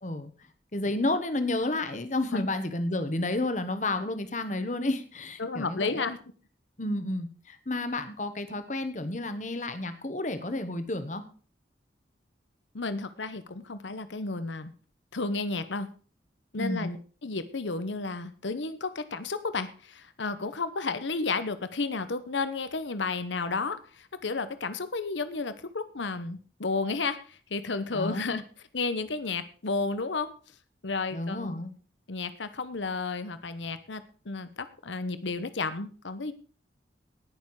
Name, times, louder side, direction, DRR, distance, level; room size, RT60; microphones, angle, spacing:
voice 1, 0.7-6.1 6.8-11.2 16.5-16.9 27.9-28.4 31.1-31.7, left 2 dB, 40° left, 10 dB, 1.3 m, -31 dB
voice 2, 5.4-6.2 12.7-14.7 15.1-15.9 16.5-28.4 28.7-30.3 30.8-31.6 32.1-36.3, left 3 dB, 85° left, 12 dB, 1.0 m, -32 dB
18.0 x 6.7 x 4.8 m, 0.40 s
head